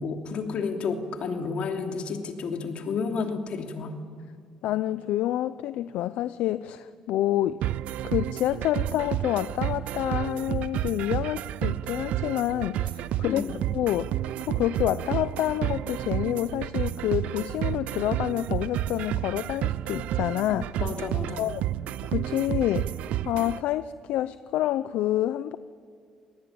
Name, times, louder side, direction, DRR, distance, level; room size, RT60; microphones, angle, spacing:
voice 1, 0.0-4.0 13.2-13.6 20.8-21.5, left 5 dB, 60° left, 4 dB, 3.0 m, -31 dB
voice 2, 4.6-7.6 8.0-13.4 13.7-14.1 14.5-20.8 21.4-21.6 22.0-22.9 23.2-25.6, left 13 dB, 75° left, 14 dB, 0.6 m, -28 dB
sound 1, 7.6-23.6, right 13 dB, 75° right, 0.6 m, -30 dB
26.0 x 19.5 x 8.7 m, 2.3 s
cardioid pair, 95°, 2 cm